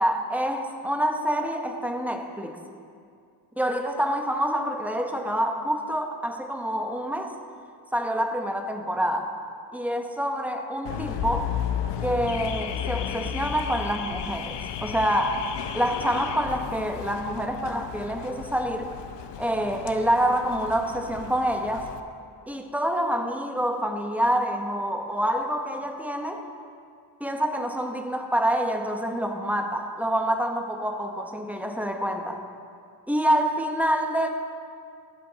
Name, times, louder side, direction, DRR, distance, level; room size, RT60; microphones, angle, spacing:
voice 1, 0.0-2.6 3.6-7.3 7.9-9.3 9.7-11.5 12.0-15.5 15.7-18.9 19.4-21.9 22.5-26.4 27.2-32.4 33.1-34.3, equal, 5° right, 4 dB, 1.0 m, -27 dB
Car / Alarm, 10.9-22.0, left 9 dB, 85° left, 0.7 m, -34 dB
14.5 x 10.5 x 4.0 m, 2.3 s
cardioid pair, 100°, 41 cm